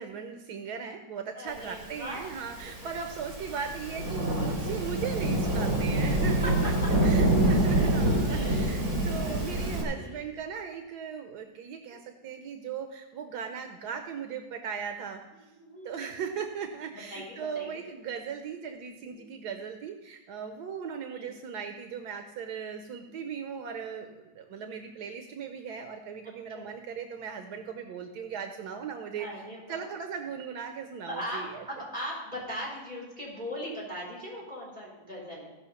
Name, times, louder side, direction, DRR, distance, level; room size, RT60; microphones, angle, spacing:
voice 1, 0.0-15.2 15.8-29.3 29.7-31.7, right 6 dB, 85° right, 6 dB, 1.4 m, -38 dB
voice 2, 1.3-2.3 6.4-6.5 7.7-7.9 8.3-8.6 8.9-9.5 9.9-10.2 11.9-12.3 15.5-16.1 17.1-17.8 19.1-19.3 21.1-21.3 24.5-24.7 26.5-26.7 29.2-29.9 31.1-35.5, equal, 30° right, -6 dB, 5.2 m, -40 dB
Thunderstorm / Rain, 2.1-9.8, right 1 dB, 65° right, 3.2 m, -26 dB
16.0 x 5.7 x 5.6 m, 1.1 s
omnidirectional pair, 1.7 m